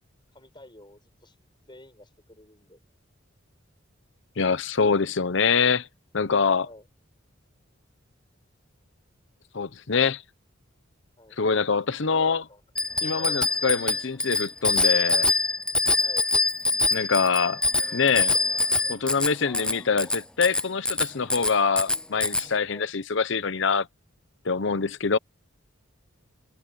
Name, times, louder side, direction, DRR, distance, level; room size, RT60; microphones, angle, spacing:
voice 1, 0.3-1.4 1.7-2.8 6.6-6.9 11.2-11.4 12.1-12.6 13.1-13.4 16.0-16.3 22.7-22.9, left 1 dB, 25° left, 7.5 m, -48 dB
voice 2, 4.4-5.9 6.1-6.7 9.5-10.2 11.4-12.4 13.0-15.3 16.9-17.6 17.9-18.4 18.9-23.9 24.4-25.2, left 5 dB, 65° left, 0.8 m, -24 dB
Bicycle bell, 12.8-22.5, left 3 dB, 5° left, 0.4 m, -25 dB
head